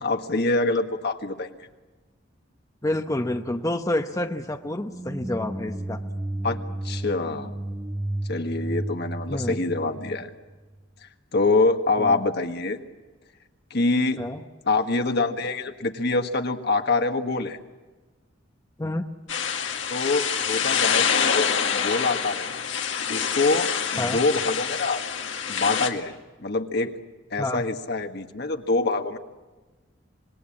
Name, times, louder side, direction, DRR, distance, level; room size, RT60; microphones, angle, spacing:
voice 1, 0.0-1.5 6.4-6.6 6.8-7.5 8.3-10.3 11.0-12.8 13.7-14.2 14.6-17.6 19.9-22.7 23.1-25.0 25.5-26.9 27.3-29.2, left 3 dB, 60° left, 6 dB, 1.6 m, -25 dB
voice 2, 2.8-6.0 9.3-9.6 12.0-12.2 14.2-14.4 18.8-19.1 24.0-24.2 27.4-27.6, left 1 dB, 20° left, 6 dB, 0.9 m, -28 dB
sound 1, 4.8-10.8, right 1 dB, 15° right, 1.0 m, -33 dB
sound 2, 19.3-25.9, left 7 dB, 80° left, 2.0 m, -26 dB
26.0 x 21.0 x 8.7 m, 1.3 s
head